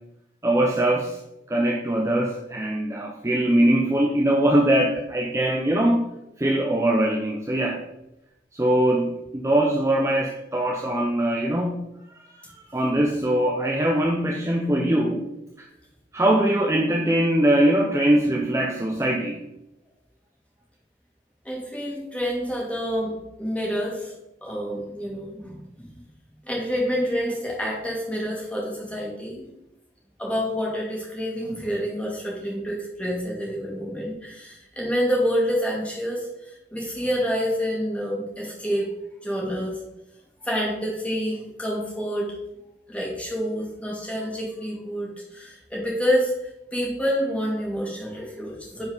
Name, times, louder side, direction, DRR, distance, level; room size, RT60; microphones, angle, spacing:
voice 1, 0.4-1.2 1.5-6.1 6.4-7.8 8.5-11.8 12.1-15.2 15.6-15.7 16.1-19.4, right 1 dB, 15° right, 0 dB, 0.7 m, -22 dB
voice 2, 21.4-23.1 23.4-24.1 24.4-25.9 26.5-29.5 30.2-38.9 39.2-39.7 40.4-42.3 42.9-46.3 46.7-48.8, equal, 10° left, -4 dB, 2.5 m, -28 dB
10.5 x 5.1 x 4.0 m, 0.90 s
head